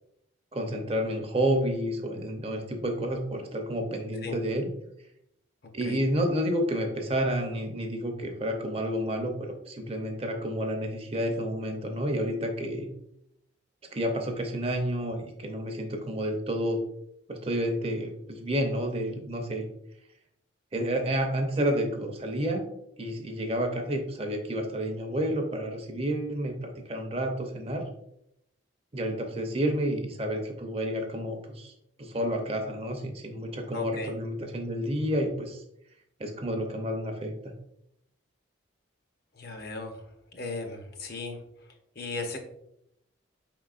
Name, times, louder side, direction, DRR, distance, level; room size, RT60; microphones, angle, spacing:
voice 1, 0.5-4.7 5.7-9.4 9.7-12.9 13.9-16.8 17.3-19.7 20.7-22.7 23.0-27.9 28.9-31.7 32.0-35.6 36.2-37.5, equal, 30° right, 4 dB, 0.5 m, -30 dB
voice 2, 33.7-34.2 39.3-40.0 40.3-41.4 42.0-42.4, left 3 dB, 50° left, 4 dB, 0.7 m, -36 dB
5.0 x 3.7 x 2.4 m, 0.78 s
head